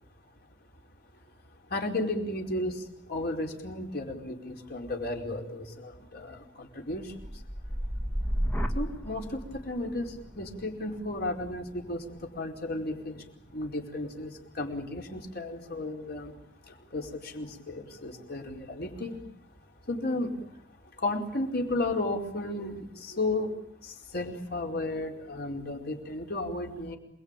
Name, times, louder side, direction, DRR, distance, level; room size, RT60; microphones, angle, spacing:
voice 1, 1.7-7.7 8.7-16.4 16.6-19.2 19.8-20.6 20.9-27.0, left 2 dB, 60° left, 1 dB, 4.7 m, -34 dB
sound 1, 7.0-14.9 15.4-15.9, equal, 10° left, 2.1 m, -36 dB
28.0 x 21.0 x 9.1 m, 0.77 s
head